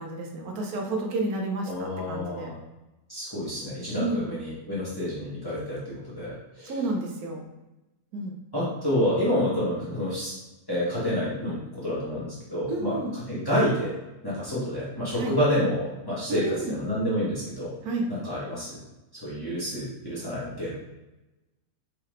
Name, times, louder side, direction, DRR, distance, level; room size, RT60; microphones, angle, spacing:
voice 1, 0.0-2.5 4.0-4.3 6.7-7.5 8.1-8.4 12.7-13.2 15.1-15.3 16.3-16.8 17.8-18.1, right 2 dB, 65° right, 1 dB, 1.3 m, -30 dB
voice 2, 1.6-2.6 3.1-6.7 8.5-10.3 10.7-13.9 14.2-17.7 18.1-18.8 19.2-20.7, equal, 15° left, -8 dB, 1.4 m, -28 dB
4.8 x 3.6 x 3.1 m, 1.0 s
omnidirectional pair, 1.8 m